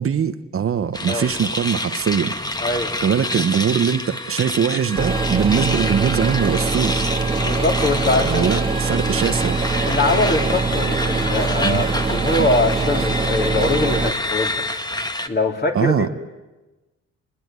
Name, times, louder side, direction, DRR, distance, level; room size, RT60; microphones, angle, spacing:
voice 1, 0.0-2.4 3.0-7.1 8.2-9.6 11.6-11.8 12.4-12.5 15.7-16.1, right 7 dB, 45° right, 1.1 m, -21 dB
sound 1, 0.9-15.3, left 1 dB, 15° left, 1.7 m, -27 dB
voice 2, 2.6-2.9 7.4-8.5 9.8-14.7 15.3-16.1, left 2 dB, 35° left, 3.9 m, -22 dB
sound 2, 5.0-14.1, right 4 dB, 15° right, 1.6 m, -23 dB
29.5 x 21.0 x 9.6 m
cardioid pair, 90°, 30 cm